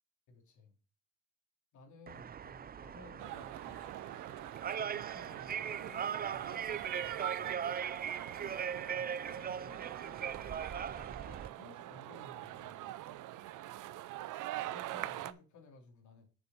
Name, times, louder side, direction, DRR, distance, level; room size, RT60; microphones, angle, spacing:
voice 1, 0.3-0.7 1.7-3.8 4.7-7.7 8.9-12.9 14.6-16.3, left 3 dB, 70° left, 3.1 m, -57 dB
sound 1, 2.1-11.5, right 8 dB, 30° right, 0.4 m, -40 dB
sound 2, 3.2-15.3, right 15 dB, 85° right, 0.7 m, -44 dB
7.0 x 6.5 x 5.5 m
cardioid pair, 90°, 30 cm